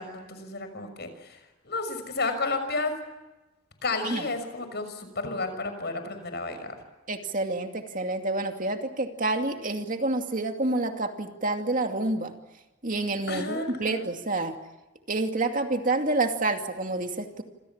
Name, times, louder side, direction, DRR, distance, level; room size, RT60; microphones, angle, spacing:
voice 1, 0.0-2.9 3.8-6.7 13.3-14.1, left 3 dB, 55° left, 9 dB, 6.1 m, -32 dB
voice 2, 7.1-12.3 12.8-14.6 15.1-17.4, right 2 dB, 40° right, 5 dB, 2.5 m, -28 dB
27.5 x 27.0 x 7.3 m, 1.1 s
head